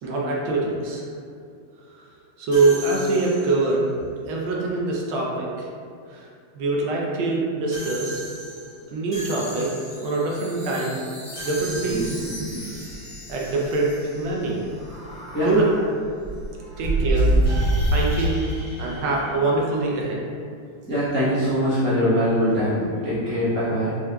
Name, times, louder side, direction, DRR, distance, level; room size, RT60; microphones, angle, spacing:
voice 1, 0.0-1.1 2.4-3.9 4.3-5.7 6.1-6.3 6.5-8.3 8.9-9.7 10.0-11.0 11.4-12.2 12.6-12.8 13.3-14.6 15.4-16.0 16.8-17.5 17.9-18.4 18.8-20.2, right 3 dB, 75° right, -3 dB, 1.4 m, -24 dB
sound 1, 2.5-3.8 7.7-10.2 11.3-12.6 17.4-20.0, right 1 dB, 30° right, 1.5 m, -38 dB
Chime, 9.8-15.4, left 1 dB, 40° left, 1.6 m, -42 dB
sound 2, 11.6-12.6 12.9-13.0 13.3-13.5 14.7-15.7 16.2-18.5, right 1 dB, 55° right, 2.1 m, -24 dB
voice 2, 20.9-24.0, equal, 15° left, -12 dB, 0.4 m, -22 dB
5.6 x 3.0 x 2.2 m, 2.3 s
omnidirectional pair, 2.3 m